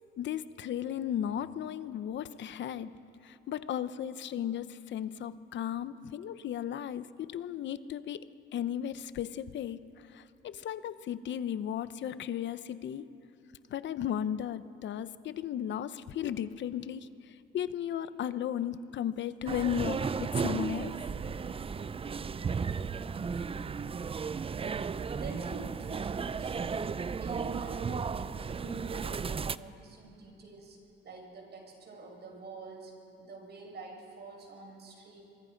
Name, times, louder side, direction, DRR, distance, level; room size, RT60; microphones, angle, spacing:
voice 1, 0.2-8.3 8.5-13.1 13.7-17.1 17.5-21.0, left 10 dB, 65° left, 13 dB, 0.8 m, -35 dB
sound 1, 19.5-29.6, right 5 dB, 30° right, 0.5 m, -34 dB
voice 2, 24.9-30.8 31.0-32.9 33.2-35.2, right 3 dB, 55° right, 1 dB, 6.4 m, -47 dB
26.0 x 24.0 x 5.2 m, 2.8 s
cardioid pair, 90°, 20 cm